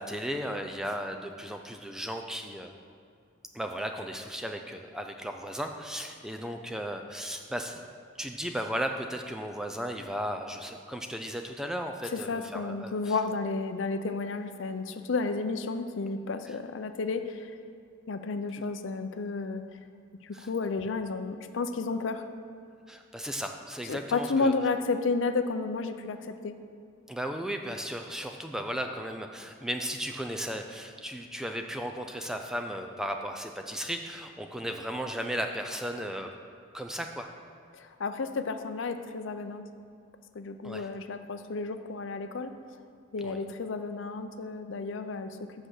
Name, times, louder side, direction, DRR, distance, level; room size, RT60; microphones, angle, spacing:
voice 1, 0.0-2.7 3.5-7.8 8.2-13.1 20.3-20.5 22.9-24.5 27.1-36.3 36.7-37.3 40.6-40.8 43.2-43.4, equal, 5° right, 4 dB, 0.4 m, -35 dB
voice 2, 12.1-17.5 18.1-19.6 20.2-22.2 23.8-26.5 37.7-39.6 40.3-42.5 43.1-45.4, left 4 dB, 65° left, 9 dB, 0.5 m, -32 dB
7.7 x 6.0 x 6.5 m, 2.4 s
head